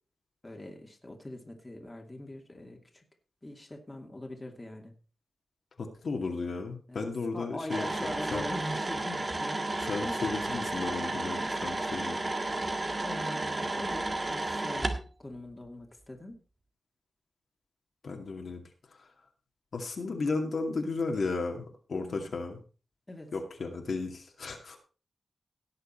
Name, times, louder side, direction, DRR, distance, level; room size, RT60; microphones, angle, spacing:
voice 1, 0.4-3.0 3.4-4.9 6.9-7.1 7.3-9.7 10.0-10.2 13.0-14.9 15.2-16.4 20.1-20.3 22.0-22.3 23.1-23.3, left 1 dB, 20° left, 2 dB, 2.5 m, -42 dB
voice 2, 5.8-7.9 8.3-8.4 9.8-12.2 18.0-18.6 19.7-22.6 23.3-24.8, left 3 dB, 65° left, 2 dB, 2.3 m, -34 dB
sound 1, 7.7-15.0, right 2 dB, 30° right, 1.6 m, -32 dB
17.5 x 6.7 x 4.5 m, 0.37 s
wide cardioid pair, 95°, 0 cm